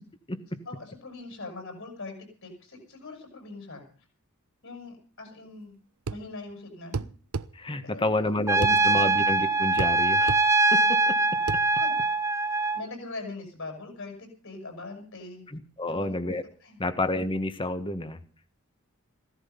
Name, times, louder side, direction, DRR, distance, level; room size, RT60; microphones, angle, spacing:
voice 1, 0.7-2.1 2.4-3.8 4.6-5.7 6.1-7.1 7.8-8.8 9.0-9.2 11.8-11.9 12.7-15.4 15.9-16.1 16.6-16.9, left 3 dB, 60° left, 4 dB, 7.6 m, -41 dB
sound 1, 6.1-6.3 6.9-7.5 8.6-8.8 9.8-10.0 10.3-10.4 11.5-11.6, right 4 dB, 70° right, 0.7 m, -31 dB
voice 2, 7.5-10.4 10.7-11.2 15.5-16.4 16.8-18.2, left 2 dB, 25° left, 11 dB, 1.5 m, -29 dB
Trumpet, 8.5-12.8, right 2 dB, 15° right, 0.8 m, -23 dB
16.5 x 14.5 x 5.6 m, 0.39 s
head